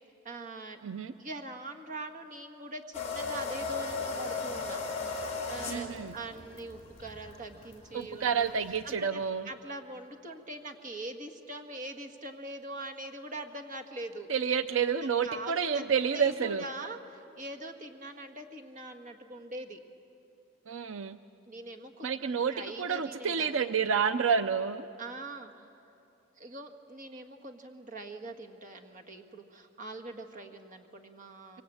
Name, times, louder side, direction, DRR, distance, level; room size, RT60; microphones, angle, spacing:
voice 1, 0.2-0.8 1.2-4.8 5.5-8.5 9.0-9.2 9.4-14.3 15.0-15.9 16.1-19.8 21.5-23.6 25.0-25.6 26.4-31.6, right 2 dB, 40° right, 3 dB, 1.7 m, -43 dB
voice 2, 0.8-1.1 5.7-6.2 7.9-9.5 14.3-16.7 20.7-21.2 22.0-24.9, right 6 dB, 85° right, 11 dB, 0.6 m, -29 dB
sound 1, 2.9-9.0, left 4 dB, 35° left, 4.3 m, -36 dB
24.5 x 24.5 x 8.7 m, 2.8 s
head